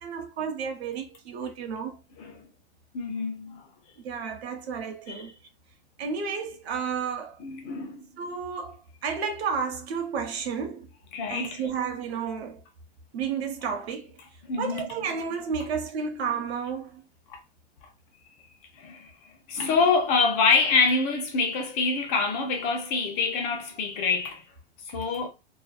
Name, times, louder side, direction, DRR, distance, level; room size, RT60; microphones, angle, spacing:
voice 1, 0.0-2.0 4.0-5.3 6.0-7.4 8.2-10.9 11.3-12.6 13.1-14.1 14.6-17.0, right 6 dB, 70° right, 0.9 m, -32 dB
voice 2, 2.9-3.6 5.1-5.3 7.4-8.0 11.1-11.6 14.5-14.9 17.3-17.4 18.8-19.1 19.5-24.4 24.9-25.3, left 4 dB, 25° left, 0.4 m, -25 dB
2.6 x 2.2 x 2.2 m
hypercardioid pair, 130°, 33 cm